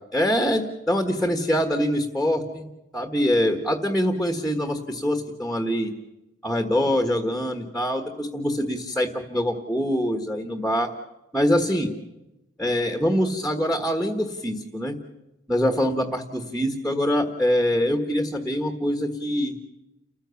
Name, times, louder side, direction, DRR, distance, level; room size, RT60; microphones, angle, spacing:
voice 1, 0.1-2.7 2.9-5.9 6.4-10.9 11.3-11.9 12.6-15.0 15.5-19.5, equal, ahead, 4 dB, 1.5 m, -24 dB
30.0 x 15.0 x 7.1 m, 0.95 s
head